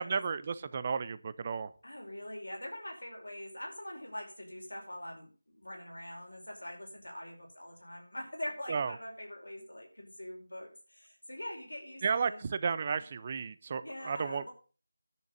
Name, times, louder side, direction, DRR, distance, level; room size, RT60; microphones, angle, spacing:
voice 1, 0.0-1.7 8.7-8.9 12.0-14.5, right 5 dB, 30° right, 15 dB, 0.7 m, -33 dB
voice 2, 1.8-12.4 12.9-13.0 13.8-14.5, left 1 dB, 85° left, 1 dB, 5.0 m, -43 dB
10.5 x 6.4 x 7.9 m, 0.37 s
figure-of-eight pair, 165°, 0 cm